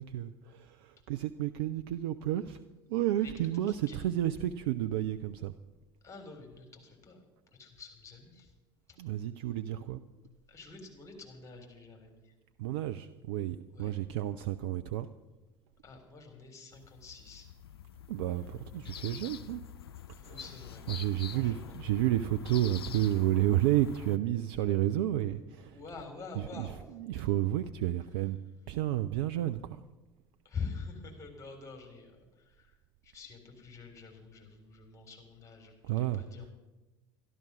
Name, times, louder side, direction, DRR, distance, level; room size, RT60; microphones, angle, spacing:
voice 1, 0.0-2.6 2.9-5.5 9.0-10.0 12.6-15.1 18.1-19.6 20.2-20.4 20.9-25.8 26.4-28.4 28.7-29.8 35.8-36.2, right 13 dB, 70° right, 11 dB, 0.5 m, -31 dB
voice 2, 6.0-7.2 7.6-8.5 8.9-9.0 10.5-12.3 13.7-13.9 15.8-17.5 20.2-20.9 21.3-21.8 25.7-26.8 30.4-32.8 33.0-36.5, left 5 dB, 25° left, 3 dB, 3.9 m, -46 dB
sound 1, 16.7-24.2, left 9 dB, 85° left, 0.4 m, -46 dB
12.5 x 12.0 x 6.2 m, 1.1 s
hypercardioid pair, 65°, 13 cm